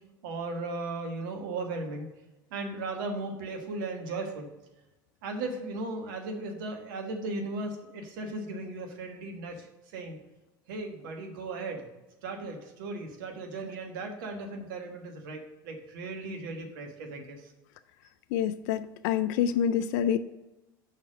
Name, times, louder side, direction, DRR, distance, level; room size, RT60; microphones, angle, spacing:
voice 1, 0.2-2.1 2.5-4.5 5.2-9.7 9.9-10.2 10.7-11.8 12.2-17.5, right 2 dB, 70° right, 3 dB, 1.4 m, -36 dB
voice 2, 18.3-20.2, left 9 dB, 65° left, 11 dB, 0.4 m, -27 dB
5.8 x 4.5 x 6.3 m, 1.0 s
hypercardioid pair, 80°, 11 cm